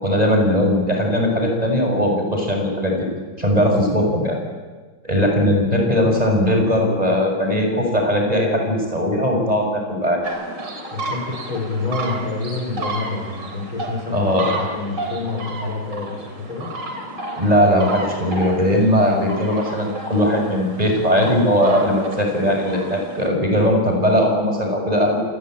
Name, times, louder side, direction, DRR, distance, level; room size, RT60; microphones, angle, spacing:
voice 1, 0.0-3.1 3.4-4.4 5.0-10.2 14.1-14.5 17.3-25.2, equal, 20° right, 2 dB, 6.1 m, -19 dB
sound 1, 10.2-23.3, right 2 dB, 60° right, 4.6 m, -32 dB
voice 2, 10.9-16.7, left 3 dB, 85° left, 2 dB, 6.5 m, -27 dB
28.0 x 20.0 x 8.9 m, 1.3 s
omnidirectional pair, 2.2 m